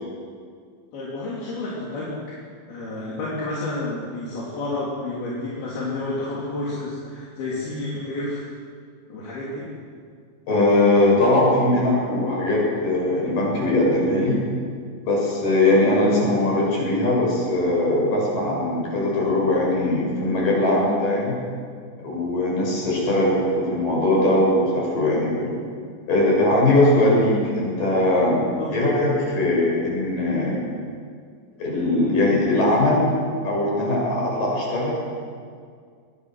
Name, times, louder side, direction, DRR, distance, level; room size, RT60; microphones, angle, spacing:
voice 1, 0.9-2.2 2.7-8.5 9.1-9.7 28.6-28.7, left 2 dB, 80° left, -6 dB, 5.3 m, -30 dB
voice 2, 10.5-14.4 15.0-21.3 22.0-25.5 26.1-28.4 28.7-30.6 31.6-33.1 33.4-34.9, left 1 dB, 60° left, -4 dB, 8.9 m, -20 dB
23.0 x 21.5 x 6.4 m, 2.1 s
omnidirectional pair, 4.3 m